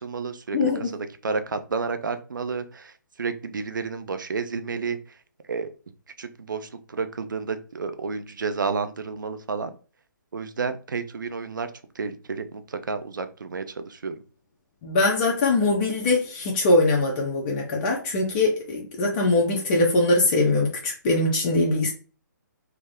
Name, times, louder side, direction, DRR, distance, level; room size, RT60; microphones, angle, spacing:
voice 1, 0.0-2.9 3.2-5.0 5.5-5.7 6.2-9.7 10.3-11.7 12.0-14.1, right 4 dB, 75° right, 10 dB, 0.5 m, -31 dB
voice 2, 14.8-21.9, left 2 dB, 30° left, -1 dB, 0.7 m, -22 dB
3.4 x 2.0 x 3.5 m, 0.37 s
figure-of-eight pair, 140°, 11 cm